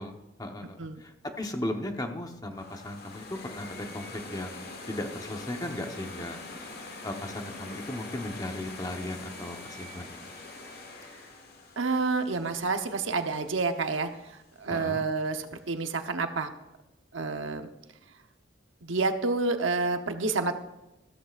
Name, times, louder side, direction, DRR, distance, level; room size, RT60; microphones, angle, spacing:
voice 1, 0.0-6.7 7.0-10.2 14.7-15.1, left 1 dB, 20° left, 4 dB, 1.0 m, -37 dB
sound 1, 2.5-13.5, left 3 dB, 55° left, 1.8 m, -44 dB
voice 2, 11.8-14.1 14.6-16.5 17.1-17.7 18.8-20.6, right 3 dB, 85° right, 7 dB, 1.0 m, -29 dB
14.0 x 13.5 x 2.5 m, 0.97 s
head